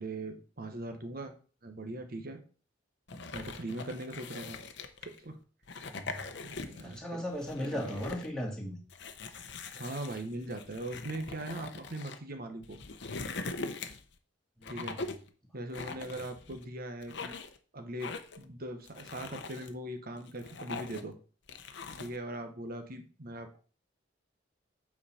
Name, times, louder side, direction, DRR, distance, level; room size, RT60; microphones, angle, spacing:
voice 1, 0.0-1.3 1.6-2.4 3.3-4.6 5.0-5.4 6.4-7.2 7.6-8.0 9.7-12.8 14.7-15.0 15.5-17.3 17.7-21.1 22.0-23.6, right 1 dB, 50° right, 6 dB, 1.2 m, -40 dB
sound 1, 3.1-5.2 5.6-7.0 7.3-8.3 8.9-12.2 12.6-14.1 14.6-15.3 15.7-16.6 17.0-17.6 18.0-18.4 18.9-19.7 20.2-21.1 21.5-22.2, left 3 dB, 65° left, 0.8 m, -42 dB
voice 2, 5.9-6.3 6.8-8.8 14.6-15.0 15.9-16.1, equal, 5° left, -2 dB, 1.9 m, -37 dB
8.3 x 4.6 x 4.3 m, 0.39 s
head